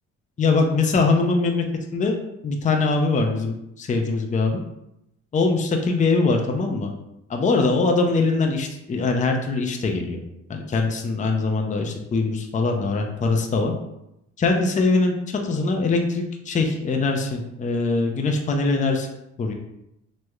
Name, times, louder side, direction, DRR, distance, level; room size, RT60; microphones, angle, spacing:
voice 1, 0.4-1.6 1.9-2.1 2.4-4.6 5.3-6.9 7.3-10.2 10.5-13.7 14.4-19.1 19.4-19.5, left 3 dB, 25° left, 2 dB, 0.5 m, -22 dB
3.1 x 2.0 x 3.5 m, 0.84 s
cardioid pair, 90°, 30 cm